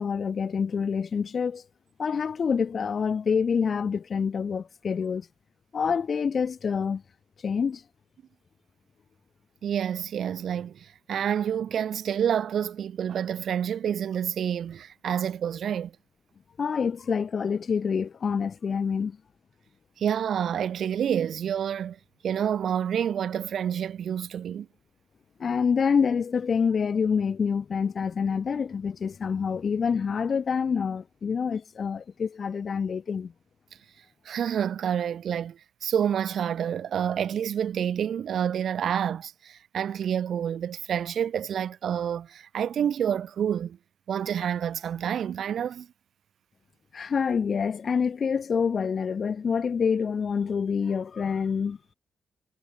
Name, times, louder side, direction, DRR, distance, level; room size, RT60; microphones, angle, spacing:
voice 1, 0.0-1.6 2.0-5.3 5.7-7.0 7.4-7.8 16.6-19.2 25.4-33.3 46.9-51.8, left 6 dB, 45° left, 0.9 m, -27 dB
voice 2, 9.6-15.9 20.0-22.0 22.2-24.7 34.3-43.8 44.1-45.9, right 9 dB, 65° right, 0.4 m, -28 dB
wide cardioid pair, 145°, 0 cm